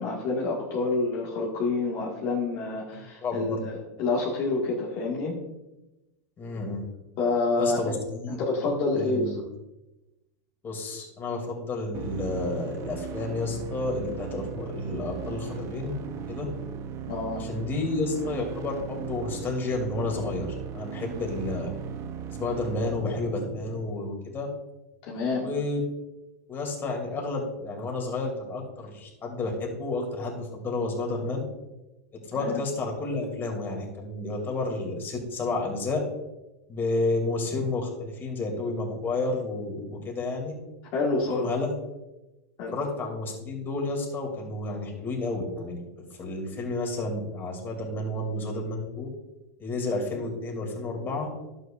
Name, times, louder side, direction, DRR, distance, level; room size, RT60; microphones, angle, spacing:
voice 1, 0.0-3.7 4.0-5.4 7.2-7.9 8.4-9.4 17.1-17.5 25.0-25.5 32.4-32.6 40.9-41.5 42.6-42.8, left 3 dB, 50° left, -4 dB, 1.9 m, -27 dB
voice 2, 2.9-3.6 6.4-6.8 7.6-8.4 8.6-9.3 10.6-16.0 16.3-16.5 17.3-20.5 20.7-21.7 22.3-24.5 25.4-25.8 26.5-31.4 32.3-36.0 36.7-40.6 41.3-41.7 42.7-49.1 49.6-51.3, left 2 dB, 25° left, 0 dB, 2.7 m, -31 dB
sound 1, 11.9-23.9, right 8 dB, 35° right, 0.7 m, -37 dB
11.5 x 8.0 x 2.5 m, 1.0 s
hypercardioid pair, 115°, 8 cm